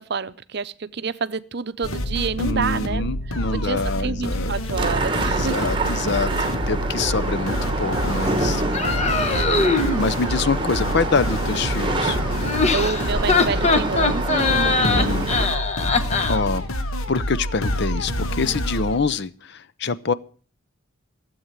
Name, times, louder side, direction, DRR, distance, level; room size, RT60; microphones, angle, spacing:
voice 1, 0.0-3.1 3.5-5.6 8.8-10.2 12.7-15.2 15.5-15.9, right 5 dB, 50° right, 14 dB, 0.6 m, -29 dB
sound 1, 1.8-19.0, equal, 90° left, 1.5 m, -27 dB
voice 2, 2.4-4.5 5.2-8.6 9.2-9.5 10.0-12.2 14.8-15.3 16.3-16.7 17.1-20.1, left 4 dB, 55° left, 16 dB, 0.7 m, -25 dB
sound 2, 4.8-15.5, right 2 dB, 25° right, 1.1 m, -27 dB
sound 3, 8.7-10.0 12.3-16.4, left 4 dB, 30° left, 1.2 m, -21 dB
15.5 x 8.0 x 7.4 m, 0.41 s
head